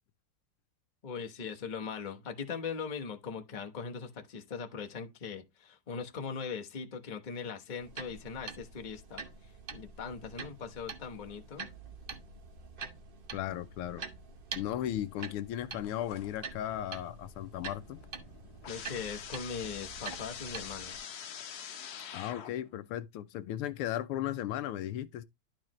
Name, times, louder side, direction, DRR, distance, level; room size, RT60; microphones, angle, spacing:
voice 1, 1.0-11.7 18.7-21.0, left 6 dB, 35° left, 0.7 m, -40 dB
sound 1, 7.8-21.0, right 5 dB, 70° right, 0.5 m, -46 dB
voice 2, 13.3-14.0 14.5-18.0 22.1-25.2, left 12 dB, 85° left, 1.5 m, -36 dB
sound 2, 15.8-16.6 17.0-22.8, left 8 dB, 55° left, 1.2 m, -45 dB
11.5 x 4.8 x 3.0 m
omnidirectional pair, 2.4 m